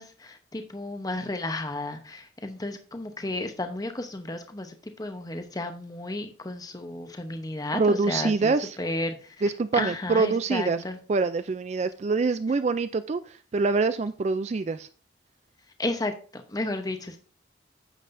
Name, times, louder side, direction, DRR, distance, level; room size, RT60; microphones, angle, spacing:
voice 1, 0.0-9.4 9.7-11.0 15.8-17.2, left 2 dB, 20° left, 7 dB, 0.8 m, -33 dB
voice 2, 7.7-8.8 9.4-10.8 11.1-14.9, right 4 dB, 35° right, 12 dB, 0.3 m, -25 dB
9.1 x 7.4 x 2.6 m, 0.39 s
head